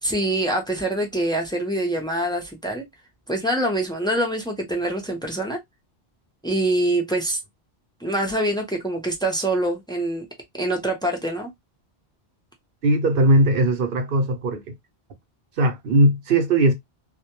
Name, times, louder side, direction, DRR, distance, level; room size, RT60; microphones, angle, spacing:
voice 1, 0.0-2.8 3.3-5.6 6.4-7.4 8.0-10.3 10.5-11.5, right 1 dB, 5° left, 0.4 m, -24 dB
voice 2, 12.8-14.7 15.6-16.7, right 1 dB, 60° right, 0.8 m, -19 dB
2.2 x 2.1 x 2.8 m
omnidirectional pair, 1.1 m